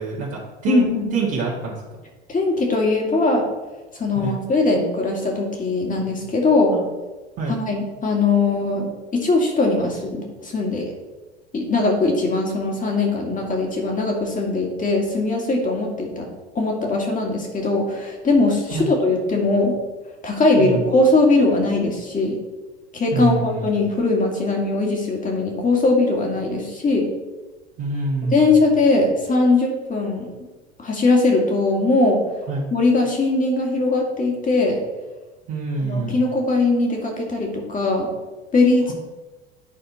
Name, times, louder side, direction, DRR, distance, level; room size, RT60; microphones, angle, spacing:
voice 1, 0.0-0.9 1.1-1.8 4.2-4.4 6.7-6.8 7.4-7.6 18.7-18.9 20.6-20.8 23.1-23.7 27.8-28.5 32.5-32.7 35.5-36.2, right 4 dB, 45° right, -6 dB, 1.8 m, -26 dB
voice 2, 0.7-1.1 2.3-3.4 3.9-6.7 7.5-10.9 11.5-16.3 16.6-19.7 20.2-22.4 22.9-27.1 28.3-30.3 30.8-32.2 32.7-34.8 35.8-38.1 38.5-38.9, left 3 dB, 25° left, 0 dB, 2.1 m, -20 dB
10.0 x 4.3 x 4.3 m, 1.2 s
figure-of-eight pair, 75°, 33 cm